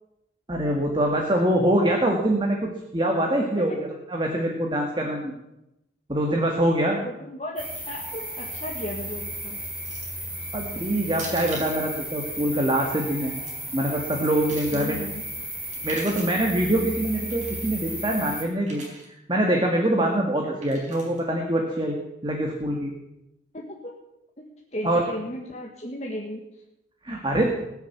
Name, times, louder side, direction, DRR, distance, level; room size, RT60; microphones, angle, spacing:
voice 1, 0.5-5.3 6.1-7.0 10.5-13.3 13.7-15.0 15.8-18.8 19.3-22.0 22.2-22.9 24.8-25.0 27.0-27.5, right 1 dB, 25° right, 1 dB, 1.9 m, -24 dB
voice 2, 3.4-3.8 6.9-9.6 14.7-15.2 23.5-23.9 24.4-24.5 24.7-26.4, equal, 35° left, -1 dB, 1.7 m, -35 dB
sound 1, 7.6-18.4, right 1 dB, 10° right, 3.5 m, -34 dB
sound 2, 9.8-10.2 11.1-11.8 13.1-13.5 14.1-14.9 15.7-16.4 17.3-17.7 18.6-19.1 20.6-21.2, right 2 dB, 40° right, 4.4 m, -42 dB
20.5 x 7.0 x 8.4 m, 0.90 s
head